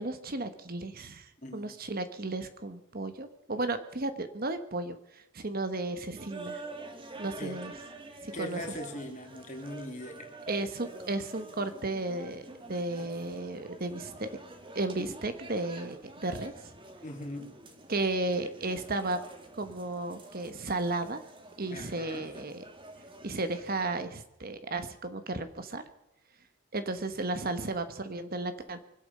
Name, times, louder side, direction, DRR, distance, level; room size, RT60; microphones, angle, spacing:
voice 1, 0.0-6.6 7.2-7.7 8.2-8.6 10.5-14.3 14.7-16.5 17.9-19.2 19.5-21.2 21.6-22.6 23.2-25.8 26.7-28.8, right 2 dB, 40° right, 9 dB, 1.1 m, -34 dB
voice 2, 1.4-1.7 7.4-7.6 8.3-10.3 17.0-17.5 21.7-22.3, equal, 35° left, 2 dB, 3.3 m, -40 dB
sound 1, 6.2-24.1, right 2 dB, 20° right, 1.8 m, -48 dB
24.5 x 8.6 x 6.6 m, 0.88 s
head